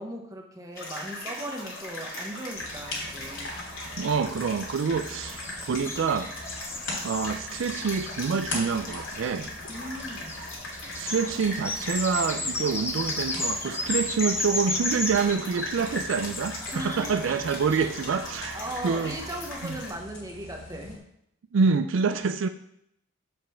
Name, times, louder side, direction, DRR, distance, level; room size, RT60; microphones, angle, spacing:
voice 1, 0.0-3.5 9.7-10.4 16.7-17.2 18.5-21.0 22.1-22.2, right 1 dB, 15° right, 2 dB, 1.0 m, -38 dB
sound 1, 0.7-19.9, left 1 dB, 85° left, 2.4 m, -39 dB
sound 2, 0.8-1.8 2.2-2.3 2.5-2.6 4.8-9.3 10.0-18.2, left 2 dB, 10° left, 0.6 m, -34 dB
sound 3, 2.5-21.0, left 2 dB, 65° left, 3.0 m, -42 dB
voice 2, 4.0-6.3 7.0-9.5 10.9-19.2 19.6-19.8 21.5-22.5, right 5 dB, 70° right, 9 dB, 0.4 m, -27 dB
7.4 x 5.2 x 4.4 m, 0.75 s
head